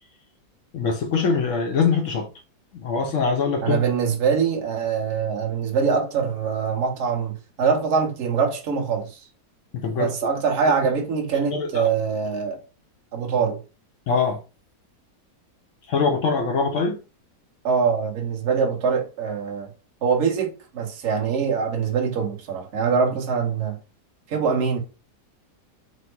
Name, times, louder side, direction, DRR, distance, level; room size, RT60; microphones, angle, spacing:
voice 1, 0.7-2.3 2.7-3.8 9.7-10.1 11.5-11.9 14.1-14.4 15.9-17.0, left 5 dB, 80° left, 0.6 m, -23 dB
voice 2, 3.6-9.2 9.9-12.6 13.1-13.6 17.6-19.7 20.0-23.8 24.3-24.8, right 6 dB, 50° right, 1.0 m, -23 dB
4.3 x 2.0 x 4.3 m
omnidirectional pair, 2.0 m